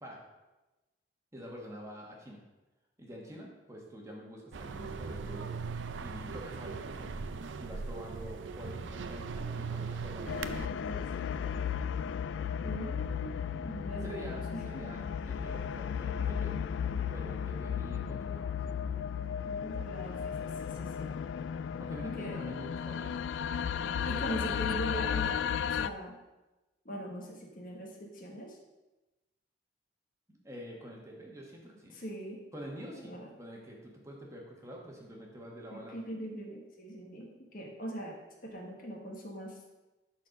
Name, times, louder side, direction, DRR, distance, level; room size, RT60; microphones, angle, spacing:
voice 1, 1.3-2.4 3.0-5.5 6.0-7.1 7.6-11.7 13.9-16.5 17.1-18.8 21.8-23.2 24.1-24.6 30.3-32.0 32.5-36.0, equal, 15° right, -1 dB, 1.4 m, -47 dB
sound 1, 4.5-10.7, right 4 dB, 85° right, 0.5 m, -39 dB
sound 2, 10.3-25.9, left 7 dB, 80° left, 0.3 m, -34 dB
voice 2, 12.6-14.8 19.4-21.2 22.0-22.7 24.0-25.3 25.7-26.2 26.8-28.6 31.9-32.4 32.9-33.3 35.7-39.6, equal, 45° left, 0 dB, 1.4 m, -41 dB
11.5 x 4.3 x 5.3 m, 1.1 s
head